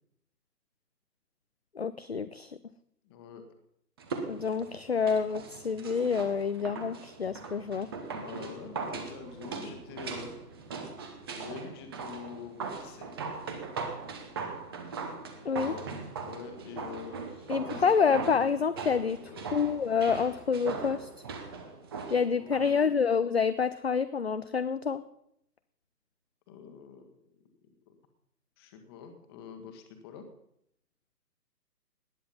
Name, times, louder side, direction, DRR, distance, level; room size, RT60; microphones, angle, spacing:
voice 1, 1.8-2.6 4.3-7.9 15.4-15.8 17.5-21.1 22.1-25.0, left 6 dB, 40° left, 11 dB, 0.5 m, -28 dB
voice 2, 3.0-3.4 8.1-10.3 11.3-13.2 15.5-15.9 16.2-17.9 19.2-19.5 22.3-22.9 26.5-27.2 27.9-28.0 28.6-30.2, left 6 dB, 15° left, 6 dB, 1.4 m, -46 dB
sound 1, 4.0-22.8 23.1-23.2, right 4 dB, 15° right, 0.9 m, -40 dB
18.5 x 10.0 x 5.5 m, 0.74 s
figure-of-eight pair, 145°, 49 cm